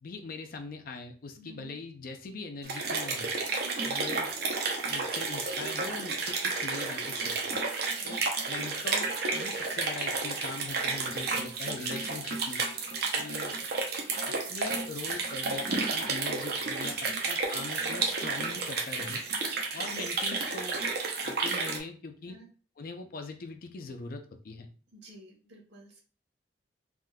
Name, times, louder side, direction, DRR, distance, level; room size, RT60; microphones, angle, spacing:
voice 1, 0.0-3.3 3.8-4.3 4.9-7.3 8.0-12.6 13.1-13.5 14.3-19.2 19.7-20.8 21.2-22.4 22.8-24.7, left 3 dB, 55° left, 6 dB, 0.5 m, -42 dB
voice 2, 1.4-1.7 3.5-3.8 7.9-8.2 17.0-17.2 22.3-22.5 24.9-26.0, right 2 dB, 85° right, -2 dB, 1.2 m, -51 dB
sound 1, 2.6-21.8, right 4 dB, 65° right, 0.7 m, -31 dB
3.6 x 2.5 x 2.3 m, 0.39 s
head